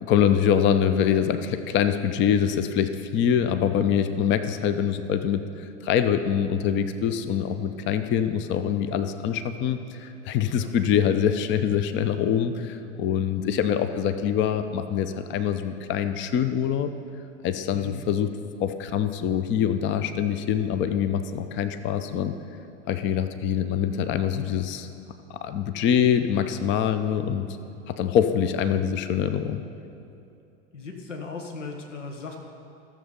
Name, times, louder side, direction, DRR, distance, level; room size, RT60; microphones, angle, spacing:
voice 1, 0.0-5.4 5.8-16.9 17.4-18.3 18.6-22.3 22.9-24.9 25.3-27.5 27.9-29.6, left 8 dB, 30° left, 10 dB, 0.6 m, -24 dB
voice 2, 30.7-32.4, left 4 dB, 80° left, 2 dB, 1.3 m, -37 dB
14.0 x 7.1 x 5.1 m, 2.7 s
figure-of-eight pair, 85°, 36 cm